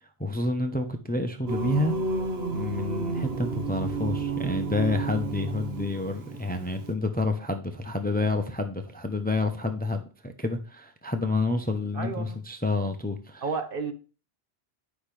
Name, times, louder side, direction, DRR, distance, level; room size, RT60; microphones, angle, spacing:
voice 1, 0.2-1.9 2.5-13.4, left 2 dB, 10° left, 6 dB, 0.7 m, -29 dB
Singing, 1.5-6.9, right 3 dB, 75° right, 1.5 m, -31 dB
voice 2, 11.9-12.4 13.4-13.9, right 4 dB, 55° right, 5 dB, 1.4 m, -31 dB
10.0 x 5.9 x 3.3 m, 0.35 s
omnidirectional pair, 1.1 m